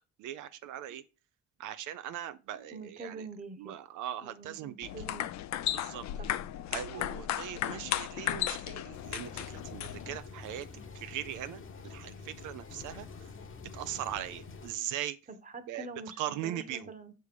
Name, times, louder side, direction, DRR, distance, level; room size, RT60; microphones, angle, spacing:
voice 1, 0.2-1.0 1.6-3.3 3.6-4.9 5.7-6.0 6.7-10.7 10.9-13.3 13.7-15.2 15.7-15.9 16.2-16.9, right 11 dB, 85° right, 0.5 m, -40 dB
voice 2, 2.5-3.7 4.2-5.3 6.2-6.4 15.3-17.1, right 3 dB, 25° right, 1.1 m, -45 dB
sound 1, 4.8-10.2, left 12 dB, 65° left, 0.5 m, -35 dB
sound 2, 8.9-14.7, left 4 dB, 45° left, 1.0 m, -47 dB
6.6 x 3.3 x 5.1 m
cardioid pair, 90°, 30 cm